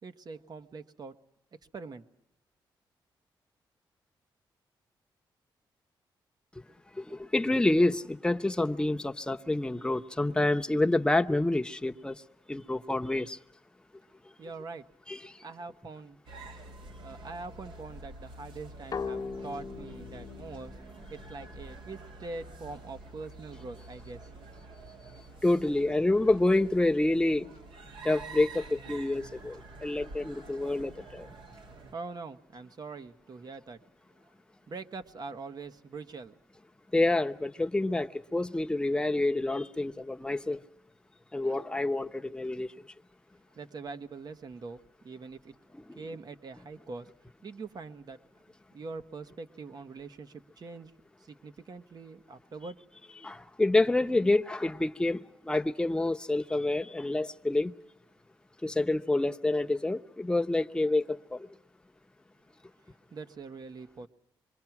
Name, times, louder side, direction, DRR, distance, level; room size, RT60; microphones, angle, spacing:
voice 1, 0.0-1.1 1.7-2.0 14.4-14.8 15.4-16.2 16.9-24.2 31.7-33.8 34.2-34.3 34.7-36.3 43.5-45.5 45.9-47.1 47.4-48.2 48.7-50.9 51.2-52.8 63.1-64.1, right 4 dB, 50° right, 1.3 m, -43 dB
voice 2, 7.0-12.2 12.5-13.4 15.1-15.4 25.4-27.5 28.0-31.3 36.9-40.6 41.3-42.7 45.9-46.0 53.2-57.7 58.6-61.5, left 2 dB, 10° left, 0.9 m, -28 dB
sound 1, 16.3-31.9, right 2 dB, 70° right, 2.2 m, -48 dB
sound 2, 18.9-22.4, left 5 dB, 45° left, 1.1 m, -40 dB
26.0 x 22.5 x 6.0 m
cardioid pair, 85°, 9 cm